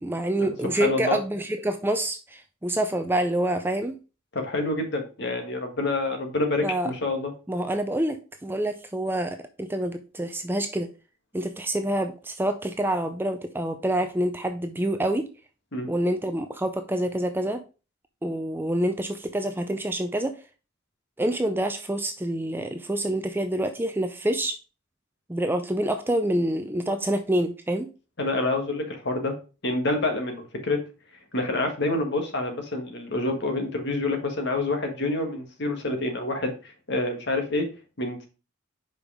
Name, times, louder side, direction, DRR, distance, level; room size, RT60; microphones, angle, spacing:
voice 1, 0.0-3.9 6.6-6.9 7.5-10.9 11.3-15.2 15.9-17.6 18.2-20.3 21.2-24.5 25.3-27.9, right 1 dB, 10° right, 7 dB, 0.4 m, -27 dB
voice 2, 0.8-1.2 4.3-7.3 15.7-15.9 28.2-29.4 29.6-30.8 31.3-37.7 38.0-38.3, left 2 dB, 55° left, 5 dB, 1.7 m, -27 dB
5.4 x 5.1 x 4.9 m, 0.32 s
head